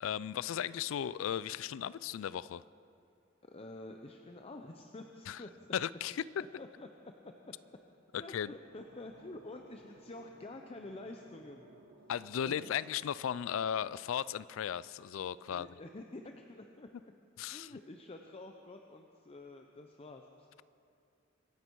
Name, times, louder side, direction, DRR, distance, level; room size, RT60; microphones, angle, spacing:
voice 1, 0.0-2.6 5.3-5.4 5.7-6.2 8.1-8.5 12.1-15.7 17.4-17.7, left 9 dB, 80° left, 19 dB, 0.3 m, -36 dB
voice 2, 3.4-6.3 6.6-6.9 7.2-7.5 8.2-11.7 12.4-12.7 15.5-16.9 17.5-20.5, left 2 dB, 30° left, 4 dB, 0.6 m, -49 dB
sound 1, 8.2-15.2, right 1 dB, 85° right, 1.4 m, -62 dB
24.0 x 9.8 x 4.6 m, 2.5 s
head